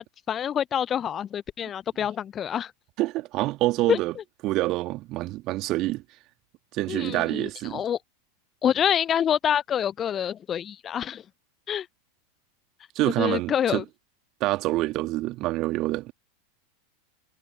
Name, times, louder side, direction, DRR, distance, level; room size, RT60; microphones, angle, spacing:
voice 1, 0.0-2.7 3.9-4.0 6.9-8.0 8.6-11.2 11.7-11.9 13.2-13.8, left 9 dB, 30° left, 0.4 m, -26 dB
voice 2, 3.0-4.1 4.4-6.0 6.7-7.8 13.0-13.8 14.4-16.1, right 18 dB, 45° right, 2.1 m, -26 dB
figure-of-eight pair, 85°, 0 cm